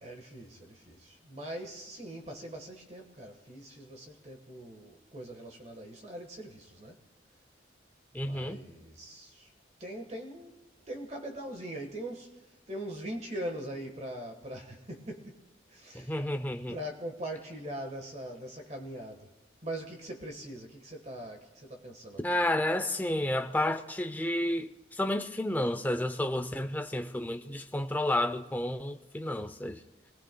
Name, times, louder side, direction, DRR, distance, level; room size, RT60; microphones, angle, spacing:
voice 1, 0.0-7.0 8.1-9.5 9.8-10.6 10.9-15.4 15.7-16.3 16.7-19.3 19.6-22.3, right 1 dB, 35° right, 1.4 m, -42 dB
voice 2, 8.1-8.6 15.9-16.8 22.2-29.8, left 1 dB, 10° left, 0.5 m, -31 dB
28.5 x 19.0 x 2.3 m
head